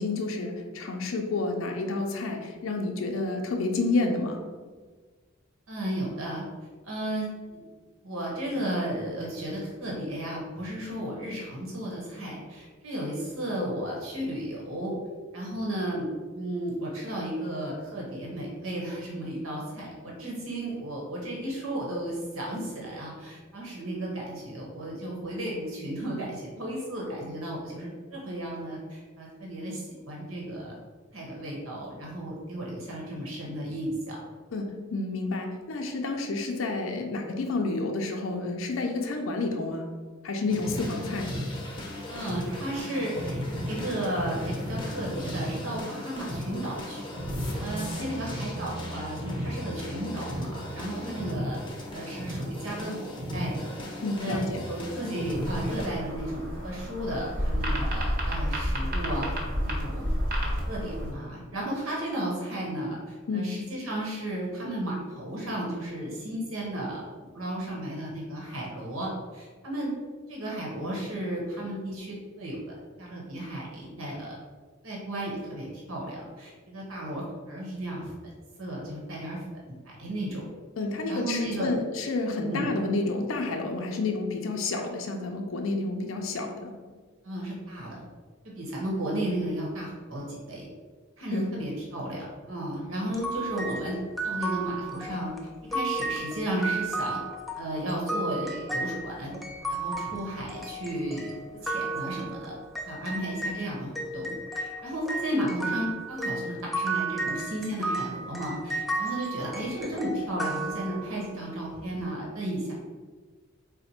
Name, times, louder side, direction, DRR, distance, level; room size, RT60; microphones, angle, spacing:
voice 1, 0.0-4.4 34.5-39.9 40.2-41.3 54.0-54.6 63.3-63.6 80.8-86.7 91.3-91.5, left 3 dB, 70° left, 3 dB, 0.5 m, -30 dB
voice 2, 5.7-6.4 6.8-7.3 8.0-15.0 15.3-30.7 31.1-34.2 42.1-43.4 43.7-51.6 51.9-53.8 54.2-60.1 60.4-67.0 67.3-69.9 70.3-74.3 74.8-78.1 78.6-79.4 79.8-80.5 81.1-81.7 82.4-82.7 87.2-88.0 88.4-90.6 91.2-94.0 94.2-95.3 95.7-97.2 97.6-99.3 99.7-101.4 101.6-102.6 102.9-112.7, right 1 dB, 90° right, -3 dB, 1.0 m, -34 dB
sound 1, 40.5-55.9, equal, 25° left, 0.7 m, -35 dB
sound 2, 55.3-61.1, equal, 45° right, 1.0 m, -30 dB
sound 3, 93.1-103.6 104.0-111.3, right 2 dB, ahead, 0.3 m, -33 dB
4.1 x 2.1 x 4.2 m, 1.4 s
head